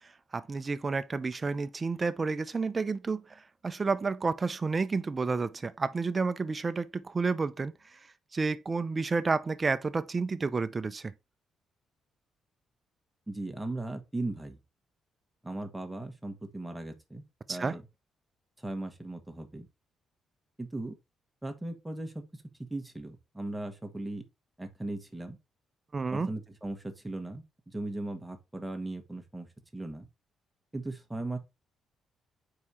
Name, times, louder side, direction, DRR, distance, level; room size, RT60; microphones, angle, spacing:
voice 1, 0.3-3.2 3.6-7.7 8.3-11.1 17.5-17.8 25.9-26.3, right 4 dB, 30° right, 0.6 m, -30 dB
voice 2, 13.3-14.6 15.4-17.2 17.5-17.8 18.6-19.7 20.6-21.0 21.4-22.4 22.7-24.2 24.6-25.4 26.1-29.5 29.7-30.1 30.7-31.4, right 2 dB, 10° right, 1.4 m, -38 dB
4.9 x 4.7 x 4.2 m
cardioid pair, 90°, 0 cm